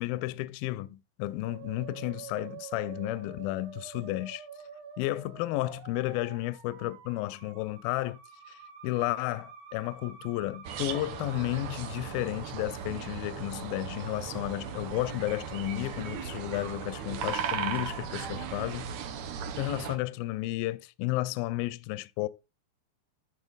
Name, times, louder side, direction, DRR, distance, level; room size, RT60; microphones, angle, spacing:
voice 1, 0.0-4.5 5.0-8.2 8.5-18.9 19.6-22.3, left 17 dB, 85° left, 2.1 m, -32 dB
Musical instrument, 1.4-13.2, right 7 dB, 60° right, 2.4 m, -48 dB
sound 1, 10.6-20.0, right 7 dB, 75° right, 1.6 m, -37 dB
12.5 x 4.3 x 3.9 m
omnidirectional pair, 4.6 m